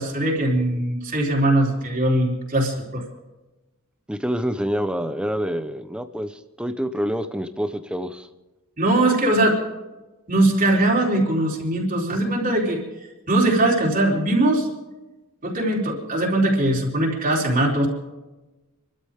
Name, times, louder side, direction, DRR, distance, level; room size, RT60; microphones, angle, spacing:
voice 1, 0.0-3.0 8.8-9.6 10.3-12.8 13.3-14.7 15.4-17.9, right 1 dB, 40° right, -1 dB, 3.8 m, -21 dB
voice 2, 4.1-8.3, equal, 5° right, 9 dB, 0.9 m, -27 dB
27.0 x 13.0 x 3.7 m, 1.1 s
head